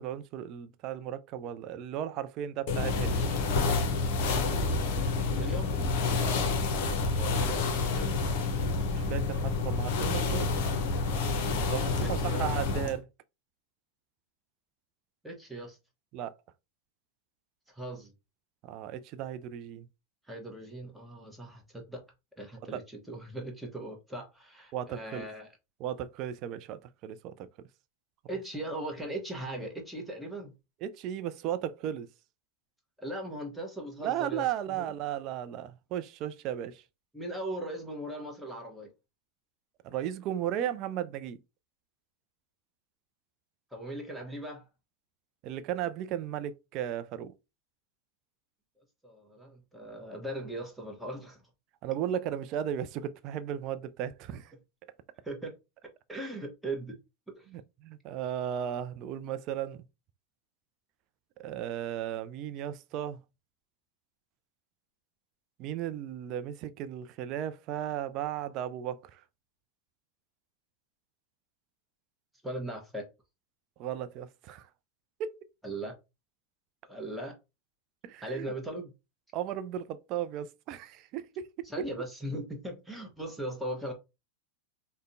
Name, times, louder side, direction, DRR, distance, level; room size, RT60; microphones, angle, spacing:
voice 1, 0.0-3.3 6.2-6.5 8.9-10.5 11.7-13.1 16.1-16.3 18.6-19.9 22.7-22.8 24.7-25.3 25.8-27.5 30.8-32.1 34.0-36.8 39.8-41.4 45.4-47.3 51.8-54.5 57.5-59.8 61.4-63.2 65.6-69.2 73.8-74.6 75.2-75.4 78.0-78.5 79.3-81.7, right 10 dB, 40° right, 0.4 m, -35 dB
sound 1, 2.7-13.0, left 3 dB, 45° left, 0.7 m, -28 dB
voice 2, 5.3-5.7 7.2-8.2 12.0-12.4 15.2-15.8 17.7-18.1 20.3-22.0 22.4-25.5 28.3-30.5 33.0-34.9 37.1-38.9 43.7-44.7 49.0-51.4 55.2-55.5 56.1-57.0 57.4-57.5 72.4-73.1 75.6-75.9 76.9-77.4 78.2-78.9 81.6-83.9, right 1 dB, 5° right, 1.0 m, -39 dB
4.9 x 2.2 x 2.6 m
figure-of-eight pair, 90°, 0 cm